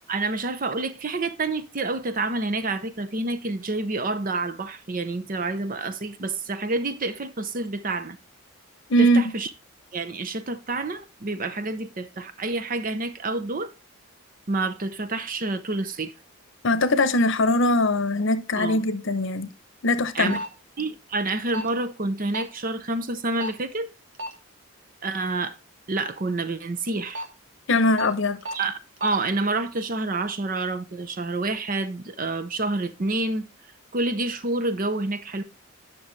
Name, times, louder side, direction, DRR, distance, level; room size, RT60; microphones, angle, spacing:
voice 1, 0.1-8.2 9.0-9.5 9.9-13.7 14.5-16.1 18.6-18.8 20.1-20.4 20.8-23.9 25.0-25.6 25.9-27.2 28.5-33.5 33.9-35.4, right 2 dB, 40° right, 0.7 m, -28 dB
voice 2, 8.9-9.2 16.6-19.5 19.8-20.4 27.7-28.4, left 1 dB, 60° left, 0.8 m, -21 dB
sound 1, 20.3-20.5 21.5-21.7 22.3-22.5 23.4-23.6 24.1-24.3 26.9-27.2 28.0-28.1 28.4-28.6 29.0-29.1, equal, 60° right, 1.5 m, -31 dB
10.0 x 6.0 x 3.2 m
head